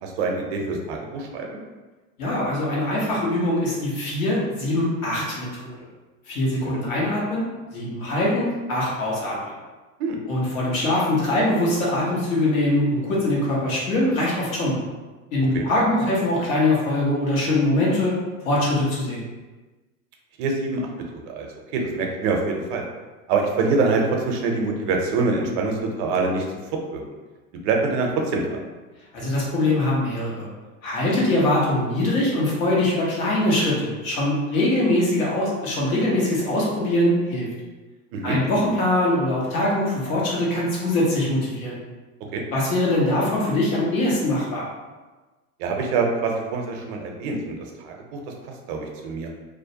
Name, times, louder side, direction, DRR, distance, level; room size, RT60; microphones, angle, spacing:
voice 1, 0.0-1.6 6.6-6.8 10.0-10.2 15.5-15.6 20.4-20.9 21.3-21.5 21.7-22.8 23.3-26.4 26.9-27.0 27.6-28.6 38.1-38.4 42.3-42.4 45.6-47.6 47.8-48.3 48.7-49.3, right 3 dB, 50° right, 1 dB, 0.5 m, -25 dB
voice 2, 2.2-5.9 6.3-7.5 7.7-9.5 10.3-14.8 15.3-18.2 18.4-19.2 29.1-30.4 30.8-37.5 38.2-41.8 42.5-44.6, left 1 dB, 75° left, -5 dB, 1.2 m, -22 dB
2.5 x 2.1 x 2.7 m, 1.3 s
hypercardioid pair, 115°, 42 cm